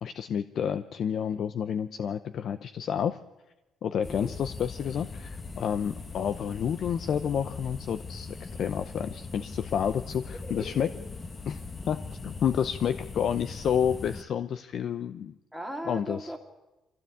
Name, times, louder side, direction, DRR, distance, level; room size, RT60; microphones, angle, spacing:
voice 1, 0.0-3.2 3.8-10.9 11.5-11.6 11.9-15.3 15.8-16.3, left 8 dB, 65° left, 11 dB, 0.7 m, -30 dB
sound 1, 4.0-14.2, left 4 dB, 30° left, 1.3 m, -40 dB
voice 2, 10.4-10.8 15.5-16.4, equal, ahead, -1 dB, 2.3 m, -37 dB
23.5 x 16.0 x 8.5 m, 1.0 s
cardioid pair, 90°, 0 cm